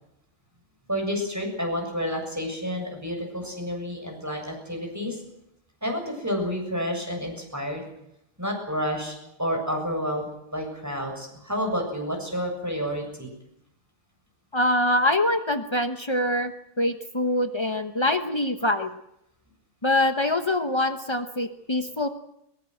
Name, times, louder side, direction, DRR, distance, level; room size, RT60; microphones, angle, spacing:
voice 1, 0.9-5.2 5.8-7.8 8.4-13.3, equal, 5° right, 2 dB, 7.1 m, -30 dB
voice 2, 14.5-16.5 16.8-18.9 19.8-22.1, left 1 dB, 35° left, 7 dB, 0.4 m, -24 dB
22.0 x 22.0 x 7.9 m, 0.81 s
omnidirectional pair, 2.3 m